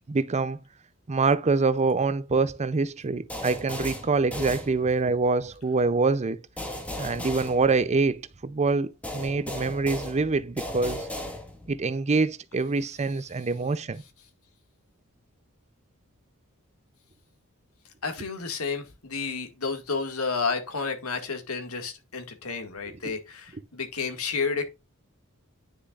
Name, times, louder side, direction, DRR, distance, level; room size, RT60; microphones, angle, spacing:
voice 1, 0.1-0.6 1.1-6.4 7.0-11.1 11.7-14.0, right 3 dB, 30° right, 0.5 m, -25 dB
sound 1, 3.3-5.2 6.6-8.3 9.0-11.8, left 1 dB, 5° left, 2.0 m, -36 dB
voice 2, 18.0-24.6, left 4 dB, 80° left, 2.0 m, -31 dB
9.6 x 6.7 x 2.4 m
head